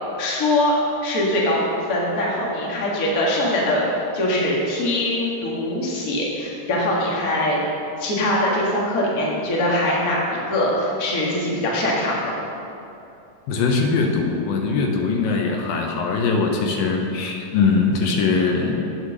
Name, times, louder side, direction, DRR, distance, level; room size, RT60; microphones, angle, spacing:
voice 1, 0.2-0.7 1.0-1.6 1.9-3.9 4.1-7.6 8.0-12.3, left 1 dB, 40° left, -4 dB, 1.3 m, -22 dB
voice 2, 13.5-18.8, left 4 dB, 80° left, 2 dB, 2.6 m, -21 dB
8.9 x 6.4 x 6.4 m, 2.8 s
omnidirectional pair, 4.1 m